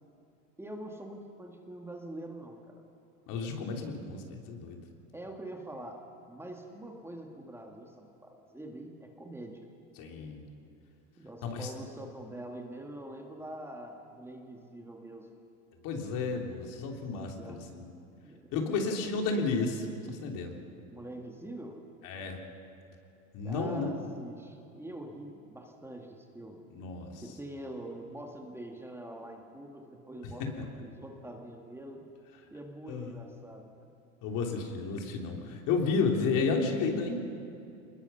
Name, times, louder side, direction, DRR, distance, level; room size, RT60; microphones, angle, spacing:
voice 1, 0.6-2.8 5.1-6.0 6.3-9.7 11.2-15.3 17.4-17.7 18.2-18.9 20.9-21.8 23.4-26.6 27.2-32.0 32.5-33.9, right 1 dB, 5° right, 1 dB, 2.0 m, -44 dB
voice 2, 3.3-4.8 10.0-10.4 11.4-11.7 15.8-17.9 18.5-20.5 22.0-22.4 23.3-24.0 26.7-27.2 32.9-33.2 34.2-37.2, left 4 dB, 50° left, 2 dB, 3.4 m, -32 dB
23.5 x 21.0 x 5.7 m, 2.7 s
hypercardioid pair, 115°, 41 cm